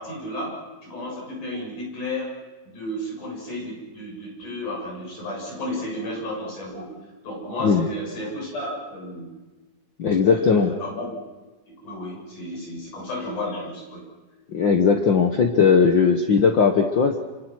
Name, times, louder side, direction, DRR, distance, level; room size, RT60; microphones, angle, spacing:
voice 1, 0.0-2.4 2.7-6.9 7.2-9.3 10.3-11.1 11.7-14.0, left 1 dB, 85° left, -2 dB, 8.9 m, -33 dB
voice 2, 10.0-10.7 14.5-17.2, left 5 dB, 55° left, 4 dB, 1.4 m, -18 dB
28.5 x 25.0 x 6.2 m, 1.2 s
omnidirectional pair, 3.5 m